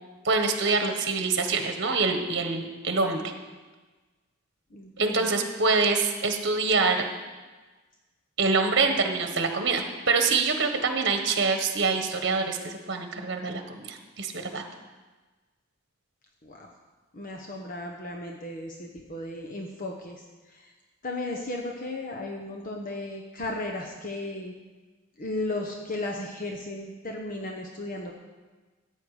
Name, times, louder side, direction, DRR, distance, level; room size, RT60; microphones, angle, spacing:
voice 1, 0.2-3.3 5.0-7.0 8.4-14.6, right 4 dB, 60° right, 5 dB, 1.2 m, -25 dB
voice 2, 4.7-5.3 16.4-16.7 17.1-20.2 20.5-20.7 21.0-24.5 25.2-28.1, left 2 dB, 45° left, 1 dB, 1.0 m, -35 dB
15.0 x 8.6 x 4.9 m, 1.3 s
head